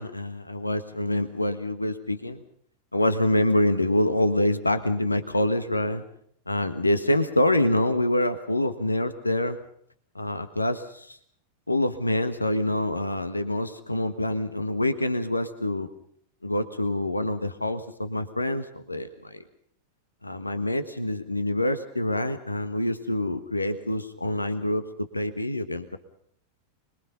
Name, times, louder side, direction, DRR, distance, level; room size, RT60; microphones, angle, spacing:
voice 1, 0.0-2.4 2.9-6.0 6.5-9.6 10.1-11.2 11.7-15.9 16.4-19.4 20.2-26.0, left 1 dB, 85° left, 10 dB, 1.4 m, -26 dB
25.0 x 22.0 x 5.6 m, 0.65 s
figure-of-eight pair, 90°, 0 cm